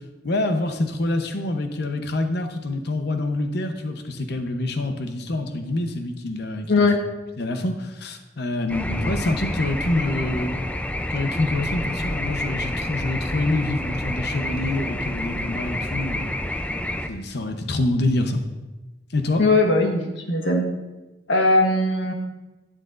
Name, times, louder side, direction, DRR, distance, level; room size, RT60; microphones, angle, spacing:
voice 1, 0.2-6.9 7.4-10.6 11.1-16.4 17.1-18.4 19.1-19.4, left 2 dB, 65° left, 6 dB, 0.9 m, -26 dB
voice 2, 6.7-7.0 19.4-20.7 21.3-22.1, left 2 dB, 80° left, 2 dB, 1.3 m, -19 dB
sound 1, 8.7-17.1, left 1 dB, 10° left, 0.4 m, -28 dB
12.0 x 9.1 x 2.5 m, 1.1 s
head